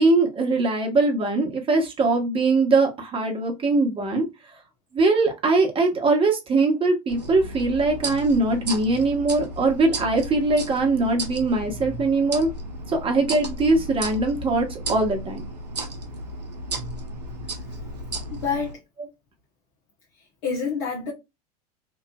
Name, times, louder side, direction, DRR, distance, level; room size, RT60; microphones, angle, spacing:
voice 1, 0.0-4.2 4.9-12.5 12.9-15.4, right 3 dB, 25° right, 1.1 m, -21 dB
sound 1, 7.1-18.7, right 1 dB, 90° right, 0.6 m, -34 dB
voice 2, 18.3-18.8 20.4-21.1, left 5 dB, 55° left, 0.9 m, -27 dB
3.1 x 2.4 x 2.3 m
hypercardioid pair, 80°, 20 cm